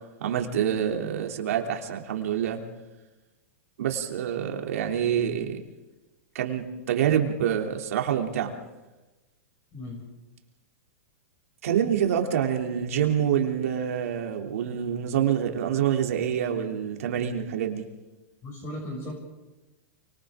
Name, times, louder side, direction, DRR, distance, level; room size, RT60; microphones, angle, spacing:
voice 1, 0.2-2.6 3.8-5.6 6.3-8.5 11.6-17.9, right 9 dB, 75° right, 2 dB, 3.1 m, -26 dB
voice 2, 9.7-10.0 18.4-19.1, left 1 dB, 30° left, -1 dB, 6.9 m, -36 dB
29.5 x 25.0 x 3.8 m, 1.1 s
hypercardioid pair, 135°, 8 cm